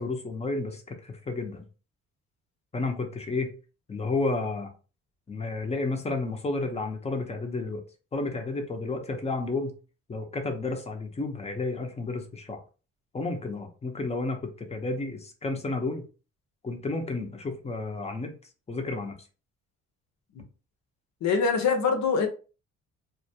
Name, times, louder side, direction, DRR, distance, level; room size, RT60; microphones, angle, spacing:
voice 1, 0.0-1.6 2.7-3.5 3.9-4.7 5.3-7.8 8.1-9.8 10.1-12.6 13.1-16.0 16.6-18.3 18.7-19.1, left 3 dB, 20° left, 0.6 m, -31 dB
voice 2, 21.2-22.3, left 5 dB, 65° left, 0.8 m, -24 dB
2.4 x 2.2 x 2.7 m
cardioid pair, 90°, 30 cm